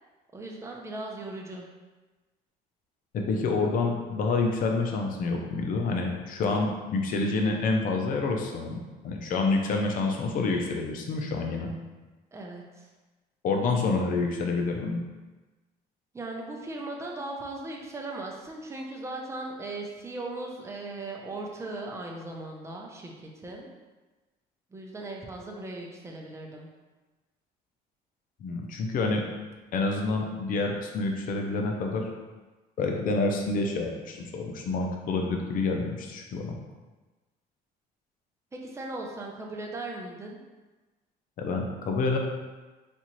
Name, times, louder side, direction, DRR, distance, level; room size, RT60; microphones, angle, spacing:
voice 1, 0.3-1.7 12.3-12.9 16.1-23.7 24.7-26.7 38.5-40.4, right 2 dB, 15° right, -1 dB, 0.6 m, -38 dB
voice 2, 3.1-11.7 13.4-15.0 28.4-29.3 29.7-32.1 32.8-36.6 41.4-42.2, left 3 dB, 55° left, 2 dB, 0.5 m, -28 dB
4.2 x 2.4 x 3.0 m, 1.2 s
cardioid pair, 110°, 17 cm